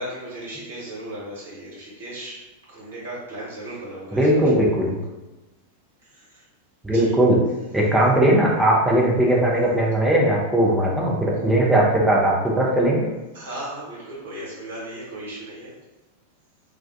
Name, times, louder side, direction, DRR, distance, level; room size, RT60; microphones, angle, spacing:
voice 1, 0.0-2.4 2.7-4.4 6.1-6.4 6.9-7.2 13.3-15.8, right 1 dB, 60° right, -6 dB, 1.1 m, -36 dB
voice 2, 4.1-5.0 6.8-7.4 7.7-13.1, right 1 dB, 10° right, -3 dB, 0.6 m, -19 dB
2.3 x 2.2 x 2.5 m, 1.1 s
figure-of-eight pair, 90°, 0 cm